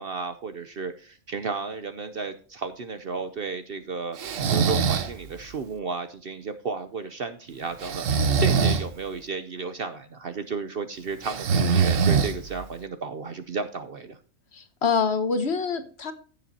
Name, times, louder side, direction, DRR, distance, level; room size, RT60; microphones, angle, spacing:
voice 1, 0.0-4.2 4.5-14.2, right 4 dB, 50° right, 9 dB, 0.8 m, -33 dB
Breathing, 4.2-5.1 7.8-8.8 11.2-12.6, right 5 dB, 70° right, 1.3 m, -22 dB
voice 2, 14.5-16.1, left 5 dB, 50° left, 10 dB, 1.2 m, -25 dB
15.5 x 7.1 x 2.8 m, 0.41 s
omnidirectional pair, 1.4 m